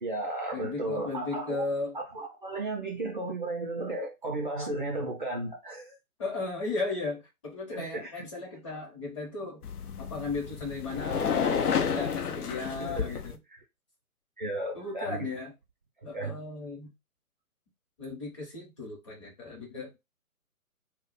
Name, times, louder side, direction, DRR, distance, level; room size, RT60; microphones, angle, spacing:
voice 1, 0.0-1.7 1.9-6.0 7.7-8.3 12.8-13.1 14.4-15.3 16.1-16.4, right 2 dB, 35° right, 0.4 m, -34 dB
voice 2, 0.5-2.0 6.2-9.6 10.0-13.4 14.7-15.5 16.0-16.9 18.0-19.9, left 3 dB, 20° left, 0.8 m, -36 dB
sound 1, 9.6-13.4, left 7 dB, 85° left, 0.6 m, -31 dB
2.3 x 2.1 x 3.9 m
figure-of-eight pair, 140°, 44 cm